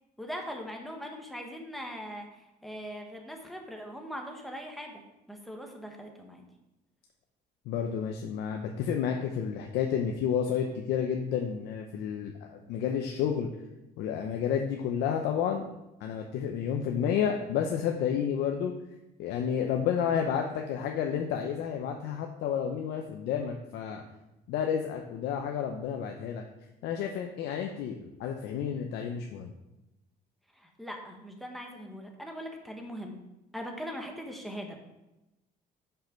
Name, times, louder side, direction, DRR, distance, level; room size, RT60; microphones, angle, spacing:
voice 1, 0.2-2.3 2.6-6.4 30.6-33.2 33.5-34.8, equal, ahead, 2 dB, 1.3 m, -41 dB
voice 2, 7.7-13.5 14.0-15.6 16.0-18.7 19.2-24.0 24.5-26.4 26.8-29.5, left 8 dB, 85° left, 3 dB, 0.7 m, -30 dB
6.0 x 5.7 x 5.1 m, 0.96 s
cardioid pair, 110°, 17 cm